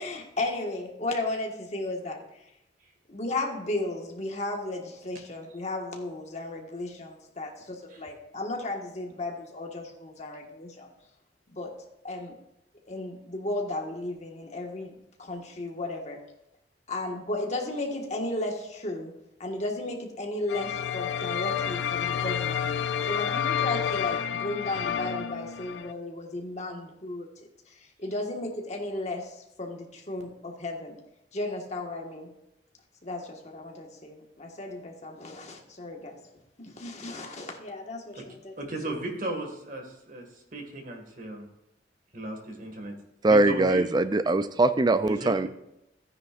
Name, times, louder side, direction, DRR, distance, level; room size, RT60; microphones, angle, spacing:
voice 1, 0.0-2.2 3.1-10.9 11.5-11.7 12.0-12.4 12.9-14.9 15.2-16.2 16.9-19.1 19.4-27.3 27.7-31.0 31.3-32.3 33.0-36.2 36.6-38.5 38.8-39.0, left 2 dB, 40° left, 1 dB, 1.6 m, -34 dB
sound 1, 20.5-25.9, left 8 dB, 90° left, 0.5 m, -29 dB
voice 2, 38.2-40.2 40.5-41.4 42.1-42.9 43.3-43.9 45.0-45.5, right 2 dB, 50° right, 3 dB, 1.9 m, -36 dB
voice 3, 43.2-45.5, right 2 dB, 25° right, 12 dB, 0.4 m, -22 dB
14.5 x 9.6 x 2.5 m, 0.86 s
head